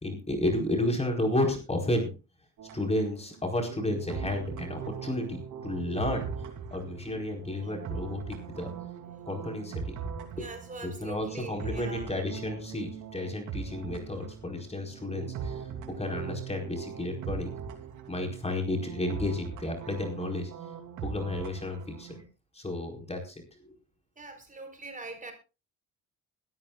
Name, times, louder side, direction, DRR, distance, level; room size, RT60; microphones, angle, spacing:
voice 1, 0.0-2.1 2.7-6.3 6.7-8.7 9.3-9.9 10.4-10.5 10.8-15.6 15.9-17.5 18.1-20.5 21.0-22.2 22.5-23.3 23.6-23.7, left 1 dB, 20° left, 4.5 m, -32 dB
sound 1, 2.6-22.2, right 7 dB, 85° right, 3.0 m, -40 dB
voice 2, 10.4-12.2 24.2-25.3, right 3 dB, 25° right, 4.5 m, -43 dB
21.5 x 13.5 x 2.4 m
cardioid pair, 90°, 30 cm